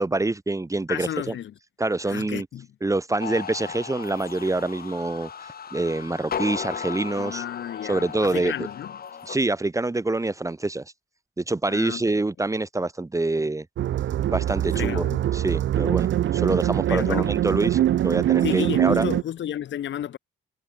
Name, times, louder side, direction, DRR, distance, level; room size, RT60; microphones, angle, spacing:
voice 1, 0.0-1.3 1.8-2.5 2.8-7.4 7.9-8.7 9.3-10.8 11.4-13.6 14.3-15.0 15.3-19.0, right 2 dB, 15° right, 1.6 m, -26 dB
voice 2, 0.9-1.5 2.1-2.7 7.2-9.0 11.7-12.0 14.7-15.3 16.9-17.3 18.4-20.2, left 10 dB, 70° left, 4.3 m, -32 dB
sound 1, 3.2-9.4, left 7 dB, 50° left, 3.9 m, -36 dB
sound 2, 13.8-19.2, right 12 dB, 70° right, 1.8 m, -23 dB
cardioid pair, 90°, 20 cm